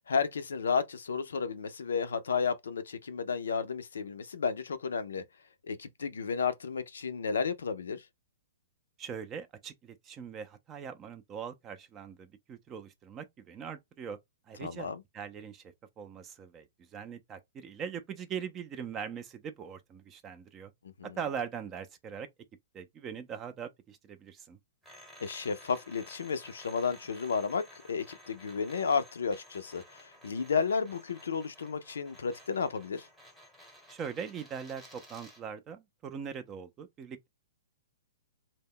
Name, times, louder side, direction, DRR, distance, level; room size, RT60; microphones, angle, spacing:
voice 1, 0.1-5.2 5.7-8.0 14.6-15.0 21.0-21.1 25.2-33.1, left 5 dB, 85° left, 0.4 m, -32 dB
voice 2, 9.0-14.2 14.5-20.7 21.2-22.3 22.7-24.6 33.9-37.3, right 7 dB, 25° right, 0.4 m, -41 dB
sound 1, 24.8-35.5, equal, ahead, 0.8 m, -54 dB
2.1 x 2.0 x 3.6 m
hypercardioid pair, 140°, 0 cm